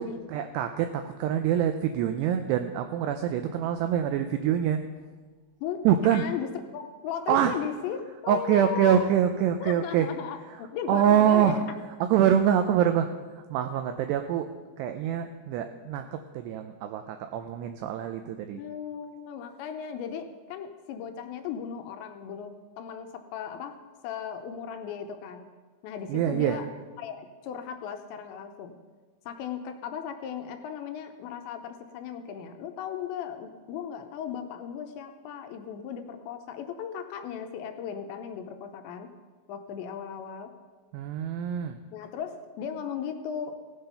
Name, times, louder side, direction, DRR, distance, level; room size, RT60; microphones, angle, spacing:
voice 1, 0.0-4.8 5.8-6.3 7.3-7.5 8.3-10.1 10.5-10.6 10.9-11.6 12.0-13.1 13.4-14.5 14.8-18.6 26.1-26.6 40.9-41.8, right 9 dB, 85° right, 7 dB, 2.4 m, -25 dB
voice 2, 6.1-9.1 9.6-10.4 10.7-11.6 18.5-23.8 24.0-25.5 25.8-26.7 27.0-28.8 29.3-39.1 39.5-40.5 41.9-43.5, left 8 dB, 80° left, 6 dB, 2.8 m, -36 dB
17.0 x 8.0 x 5.6 m, 1.4 s
omnidirectional pair, 5.5 m